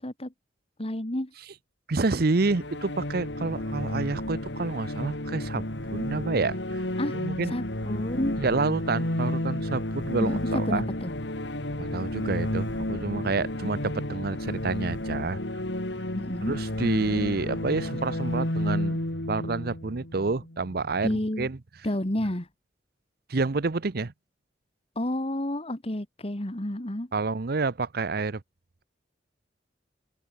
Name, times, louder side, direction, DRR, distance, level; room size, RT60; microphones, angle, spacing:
voice 1, 0.8-1.3 7.0-7.2 7.4-8.4 10.2-11.1 13.6-13.7 16.2-16.5 21.0-21.5 21.8-22.5 25.0-27.1, left 1 dB, 35° left, 2.0 m, -30 dB
voice 2, 1.9-5.6 5.9-6.8 7.1-7.6 8.4-10.9 11.8-15.4 16.5-19.0 19.3-21.6 23.3-24.1 27.1-28.4, right 3 dB, 60° right, 0.8 m, -28 dB
sound 1, 2.2-20.8, left 1 dB, 80° left, 3.3 m, -32 dB
open air
head